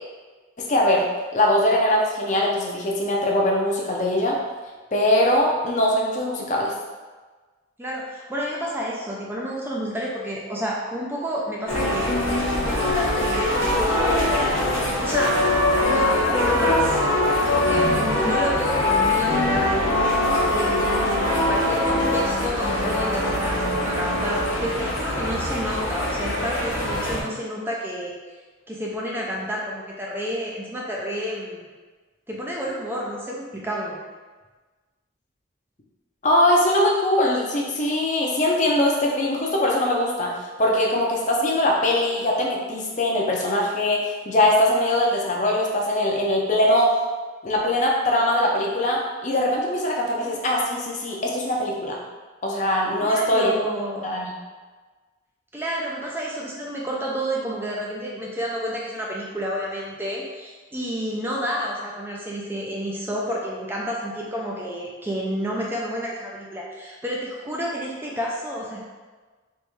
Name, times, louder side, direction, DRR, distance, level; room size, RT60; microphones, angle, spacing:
voice 1, 0.6-1.1 1.3-4.4 4.9-6.7 36.2-46.9 47.4-52.0 52.4-53.5 54.0-54.3, left 1 dB, 35° left, -2 dB, 0.6 m, -21 dB
voice 2, 7.8-12.1 12.6-15.4 15.8-17.0 17.5-20.0 20.5-28.4 28.7-31.7 32.3-34.0 50.2-50.3 53.0-54.2 55.5-68.8, equal, 10° right, -3 dB, 0.4 m, -30 dB
sound 1, 11.7-27.2, left 1 dB, 70° left, 0.8 m, -22 dB
3.4 x 3.0 x 3.1 m, 1.4 s
head